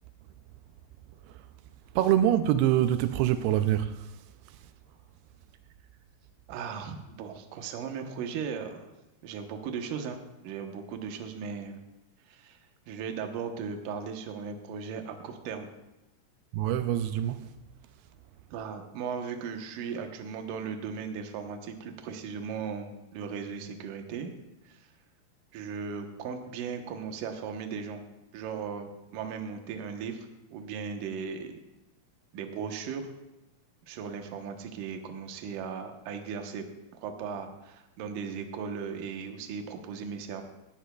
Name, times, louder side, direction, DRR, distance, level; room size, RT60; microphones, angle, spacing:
voice 1, 2.0-4.1 16.5-17.5, right 11 dB, 85° right, 10 dB, 2.5 m, -25 dB
voice 2, 6.5-8.9 9.2-11.8 12.3-12.6 12.9-15.7 18.5-24.3 24.7-24.9 25.5-28.0 28.3-31.5 32.3-33.1 33.9-36.6 36.9-40.4, right 6 dB, 70° right, 5 dB, 2.4 m, -37 dB
17.5 x 15.0 x 2.3 m, 0.96 s
omnidirectional pair, 4.5 m